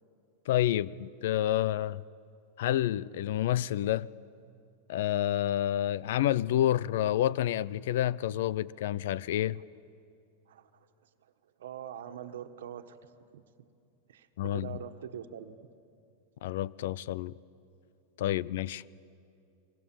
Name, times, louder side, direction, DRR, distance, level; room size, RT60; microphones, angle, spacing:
voice 1, 0.5-2.0 2.6-4.1 4.9-9.6 14.4-14.7 16.4-17.3 18.2-18.8, left 12 dB, 70° left, 0.6 m, -29 dB
voice 2, 11.6-13.0 13.3-13.4 14.1-15.6, right 10 dB, 85° right, 1.5 m, -43 dB
30.0 x 23.0 x 7.6 m
supercardioid pair, 145°, 0 cm